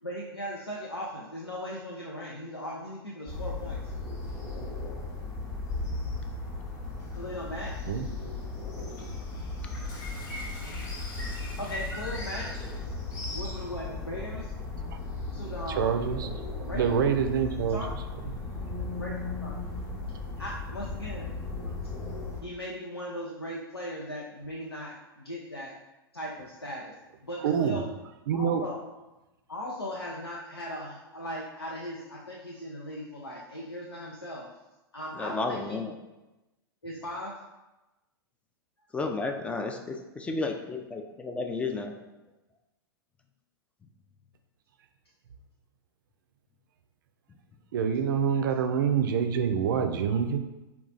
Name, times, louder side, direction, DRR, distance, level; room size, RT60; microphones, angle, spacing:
voice 1, 0.0-3.9 7.1-7.8 11.6-12.5 13.2-14.5 15.3-16.1 16.6-17.0 17.6-17.9 19.0-19.6 20.4-21.4 22.4-25.7 26.1-27.0 27.2-27.9 28.3-28.8 29.5-34.5 34.9-35.8 36.8-37.4, left 1 dB, 85° left, -3 dB, 0.5 m, -38 dB
sound 1, 3.3-22.4, left 3 dB, 25° left, 0.8 m, -36 dB
Toilet flush, 8.7-13.0, left 2 dB, 60° left, 0.8 m, -50 dB
voice 2, 15.8-16.3 16.7-17.8 27.4-27.8 28.3-28.6 47.7-50.4, right 7 dB, 55° right, 7 dB, 0.4 m, -26 dB
voice 3, 35.2-35.9 38.9-42.0, left 3 dB, 10° left, 4 dB, 0.3 m, -32 dB
3.8 x 2.3 x 3.7 m, 1.0 s
figure-of-eight pair, 100°, 13 cm